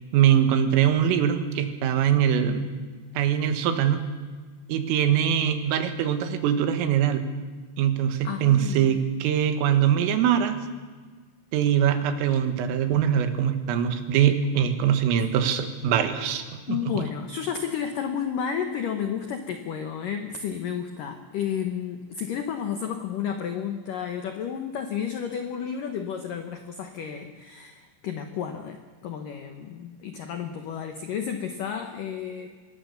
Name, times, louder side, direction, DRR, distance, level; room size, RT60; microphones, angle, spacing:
voice 1, 0.1-2.7 3.2-4.0 4.7-7.3 7.8-10.6 11.5-17.0, right 9 dB, 85° right, 8 dB, 4.2 m, -23 dB
voice 2, 8.2-9.1 15.2-15.3 16.7-32.5, left 8 dB, 90° left, 6 dB, 1.9 m, -32 dB
25.5 x 20.0 x 6.9 m, 1.4 s
omnidirectional pair, 5.8 m